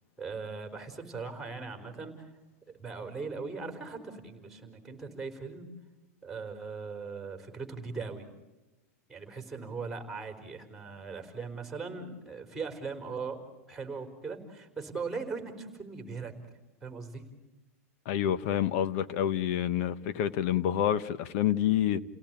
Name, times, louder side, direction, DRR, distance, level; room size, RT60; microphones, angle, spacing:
voice 1, 0.2-2.3 2.8-5.7 6.2-8.3 9.1-13.4 13.7-16.3 16.8-17.2, right 4 dB, 5° right, 4.3 m, -39 dB
voice 2, 18.0-22.0, left 10 dB, 50° left, 1.2 m, -28 dB
30.0 x 17.5 x 9.0 m
supercardioid pair, 145°, 8 cm